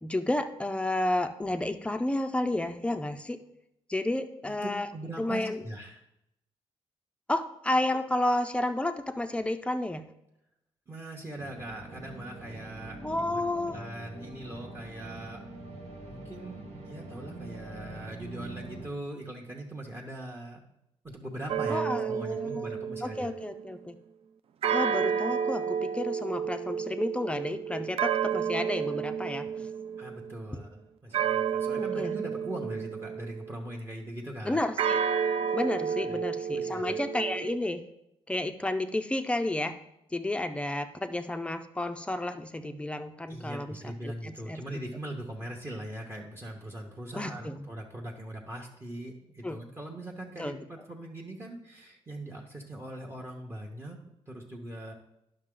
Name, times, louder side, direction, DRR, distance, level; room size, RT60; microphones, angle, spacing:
voice 1, 0.0-3.4 3.9-4.9 5.2-5.6 7.3-10.1 13.0-13.8 21.7-22.7 23.0-24.0 24.7-29.7 31.8-32.2 34.4-35.0 35.5-37.8 38.3-39.8 40.1-44.6 47.1-47.7 49.4-49.6 50.4-50.6, left 1 dB, 10° left, 8 dB, 0.5 m, -31 dB
voice 2, 4.6-6.0 10.9-13.0 13.3-15.5 16.0-20.6 21.0-23.3 30.0-34.6 36.0-36.2 36.5-37.0 43.3-54.9, right 1 dB, 20° right, 1 dB, 0.9 m, -41 dB
sound 1, 11.4-18.9, right 2 dB, 85° right, 1.7 m, -44 dB
sound 2, 21.5-23.6 24.6-30.3 31.1-33.6 34.8-37.6, right 7 dB, 65° right, 0.4 m, -31 dB
11.0 x 5.9 x 3.8 m, 0.83 s
cardioid pair, 130°, 11 cm